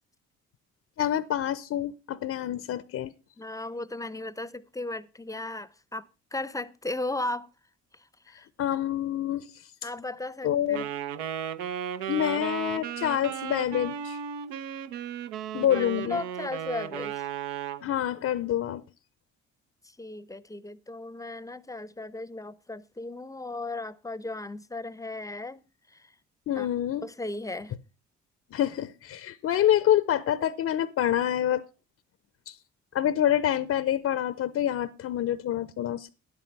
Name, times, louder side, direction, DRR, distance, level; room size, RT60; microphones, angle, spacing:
voice 1, 1.0-3.1 8.3-9.7 10.4-10.8 12.1-14.2 15.5-16.2 17.8-18.8 26.5-27.0 28.5-31.6 32.5-32.6 32.9-36.1, left 11 dB, 45° left, 0.6 m, -27 dB
voice 2, 3.4-7.5 7.9-8.5 9.8-10.9 15.7-17.3 19.8-25.6 25.9-26.1 26.5-26.7 27.0-27.7, left 2 dB, 10° left, 0.7 m, -36 dB
Wind instrument woodwind instrument, 10.7-17.9, right 9 dB, 75° right, 0.7 m, -35 dB
10.5 x 8.2 x 5.5 m
hypercardioid pair, 45°, 34 cm